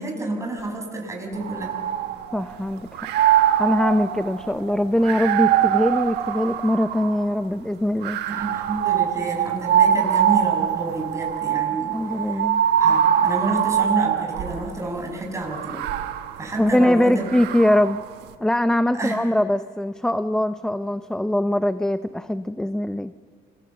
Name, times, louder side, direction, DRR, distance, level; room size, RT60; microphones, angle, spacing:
voice 1, 0.0-1.7 8.3-11.9 12.3-12.4 12.8-15.8 16.4-17.3 18.9-19.2, right 2 dB, 15° right, 0 dB, 6.3 m, -29 dB
sound 1, 1.4-2.6 2.9-7.3 8.0-14.7 15.5-18.1, right 10 dB, 85° right, 1.5 m, -23 dB
voice 2, 2.3-3.1 3.6-8.2 11.9-12.6 16.6-18.0 18.4-23.1, left 1 dB, 5° left, 11 dB, 0.6 m, -22 dB
29.0 x 22.0 x 7.5 m, 2.1 s
cardioid pair, 110°, 17 cm